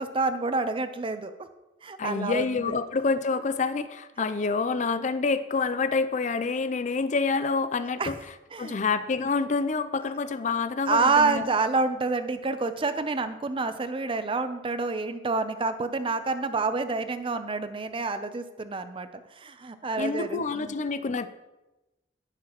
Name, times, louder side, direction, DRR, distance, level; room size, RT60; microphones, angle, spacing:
voice 1, 0.0-1.3 1.8-2.6 8.0-8.1 8.5-8.8 10.9-19.1 19.4-20.7, right 3 dB, 30° right, 10 dB, 0.5 m, -28 dB
voice 2, 2.0-8.2 8.6-11.5 20.0-21.3, left 4 dB, 40° left, 12 dB, 0.5 m, -27 dB
16.5 x 5.8 x 3.0 m, 1.0 s
head